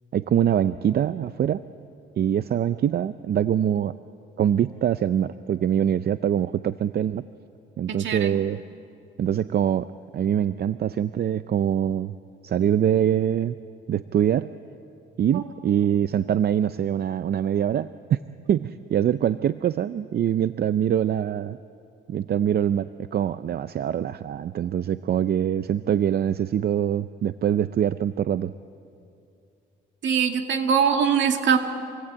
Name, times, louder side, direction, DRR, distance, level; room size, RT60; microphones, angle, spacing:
voice 1, 0.1-1.6 2.2-3.9 4.4-7.2 7.8-8.6 9.2-9.9 10.1-12.1 12.4-13.6 13.9-14.5 15.2-18.2 18.5-21.6 22.1-28.5, right 9 dB, 55° right, 13 dB, 0.5 m, -24 dB
voice 2, 7.9-8.4 15.3-15.4 30.0-31.6, right 7 dB, 70° right, 5 dB, 2.2 m, -22 dB
26.5 x 19.0 x 8.7 m, 2.5 s
cardioid pair, 90°, 20 cm